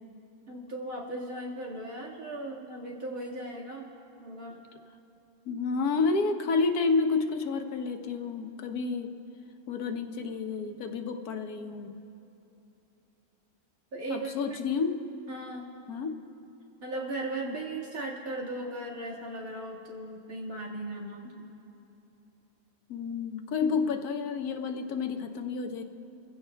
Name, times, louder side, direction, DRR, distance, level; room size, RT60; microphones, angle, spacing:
voice 1, 0.5-3.9 4.2-4.6 13.9-14.6 15.3-15.7 16.8-21.5, right 2 dB, 65° right, -3 dB, 2.3 m, -37 dB
voice 2, 5.4-9.1 9.7-12.0 14.1-14.9 15.9-16.1 17.4-17.6 22.9-25.8, left 4 dB, 85° left, 5 dB, 1.4 m, -30 dB
26.5 x 16.0 x 2.2 m, 3.0 s
omnidirectional pair, 1.6 m